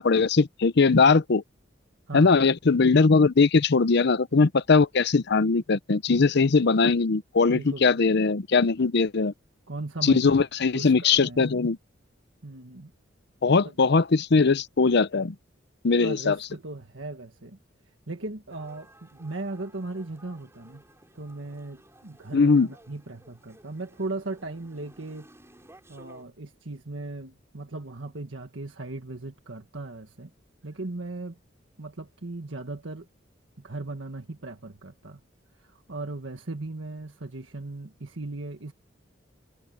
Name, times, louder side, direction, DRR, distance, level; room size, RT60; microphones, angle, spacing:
voice 1, 0.0-1.4 2.1-9.3 10.0-11.8 13.4-15.3 15.8-16.4 22.3-22.7, left 4 dB, 60° left, 0.7 m, -20 dB
voice 2, 7.5-7.9 9.7-10.3 10.7-11.5 12.4-12.9 13.6-13.9 16.0-17.6 18.1-20.8 21.1-25.3 25.9-30.3 30.6-31.4 31.8-33.1 33.6-35.2 35.6-38.7, right 2 dB, 85° right, 1.6 m, -37 dB
sound 1, 18.5-26.2, right 1 dB, 15° right, 5.2 m, -56 dB
head